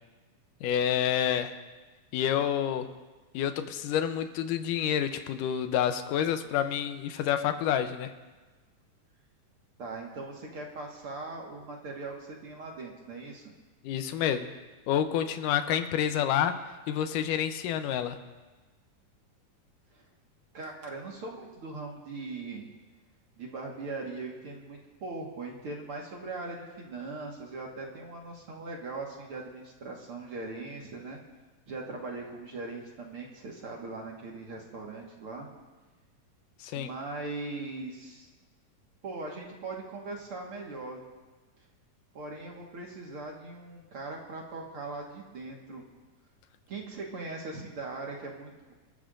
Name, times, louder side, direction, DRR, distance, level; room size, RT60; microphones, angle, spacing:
voice 1, 0.6-1.5 2.1-2.9 3.3-8.1 13.8-14.5 14.9-16.6 16.9-18.2 36.6-36.9, left 9 dB, 85° left, 8 dB, 2.3 m, -28 dB
voice 2, 9.8-12.1 12.4-13.5 19.9-20.0 20.5-22.7 23.4-31.2 31.7-35.5 36.7-38.3 39.0-41.0 42.1-45.8 46.7-48.7, right 3 dB, 50° right, -1 dB, 2.1 m, -40 dB
27.5 x 13.0 x 2.6 m, 1.3 s
omnidirectional pair, 3.7 m